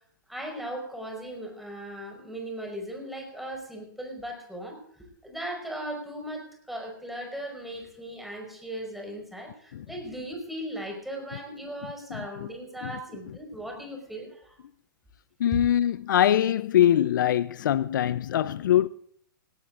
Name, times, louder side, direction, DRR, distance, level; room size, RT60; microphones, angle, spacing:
voice 1, 0.3-14.6 15.5-15.6, right 1 dB, ahead, 4.9 m, -38 dB
voice 2, 15.4-18.9, left 11 dB, 70° left, 0.5 m, -23 dB
18.5 x 17.5 x 2.5 m
hypercardioid pair, 130°, 11 cm